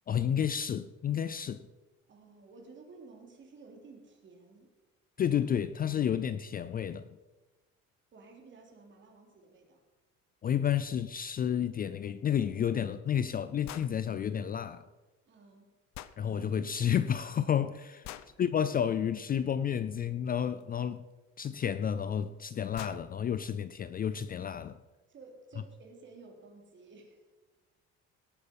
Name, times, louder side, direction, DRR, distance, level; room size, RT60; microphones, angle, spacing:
voice 1, 0.1-1.6 5.2-7.1 10.4-14.8 16.2-18.1 18.4-21.0 21.4-24.8, left 9 dB, 30° left, 0.4 m, -31 dB
voice 2, 2.1-4.7 8.1-9.8 15.2-15.7 25.1-27.3, right 3 dB, 40° right, 3.3 m, -54 dB
sound 1, 13.6-13.9 15.9-16.2 18.0-18.3 20.6-20.7 22.0-22.1 22.4-22.5 22.7-23.0, left 13 dB, 70° left, 0.7 m, -44 dB
18.0 x 8.5 x 5.4 m
cardioid pair, 140°, 30 cm